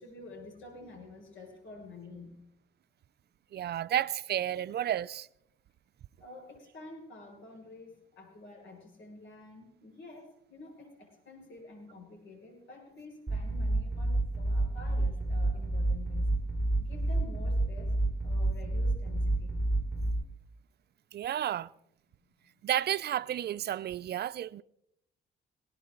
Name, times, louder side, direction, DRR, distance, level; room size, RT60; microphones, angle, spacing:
voice 1, 0.0-2.4 6.2-16.3 16.8-17.9 18.2-19.5, left 2 dB, 75° left, 6.2 m, -49 dB
voice 2, 3.5-5.3 21.1-21.7 22.6-24.6, right 11 dB, 55° right, 0.6 m, -31 dB
sound 1, 13.3-20.1, right 2 dB, 5° left, 6.3 m, -29 dB
19.5 x 18.0 x 4.0 m
cardioid pair, 90°, 20 cm